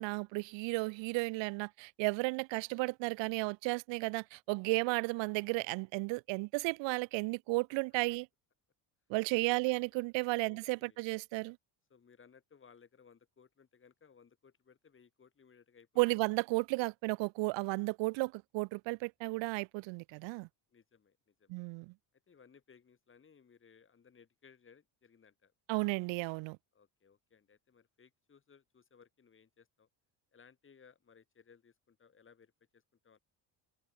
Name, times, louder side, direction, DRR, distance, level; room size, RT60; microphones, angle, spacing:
voice 1, 0.0-8.2 9.1-11.6 16.0-20.5 21.5-21.9 25.7-26.6, right 25 dB, 85° right, 0.7 m, -34 dB
voice 2, 9.4-9.8 10.4-11.0 11.9-16.2 20.7-21.6 22.3-25.5 26.7-29.9 30.3-33.2, left 6 dB, 30° left, 3.9 m, -63 dB
cardioid pair, 135°, 43 cm